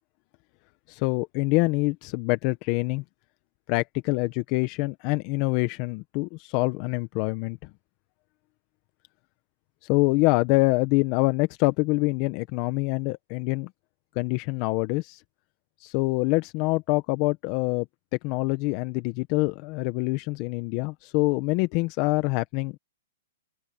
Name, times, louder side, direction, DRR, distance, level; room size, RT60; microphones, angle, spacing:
voice 1, 0.9-3.0 3.7-7.6 9.9-13.7 14.1-15.2 15.8-17.9 18.2-22.7, left 24 dB, 40° left, 1.4 m, -25 dB
hypercardioid pair, 140°, 0 cm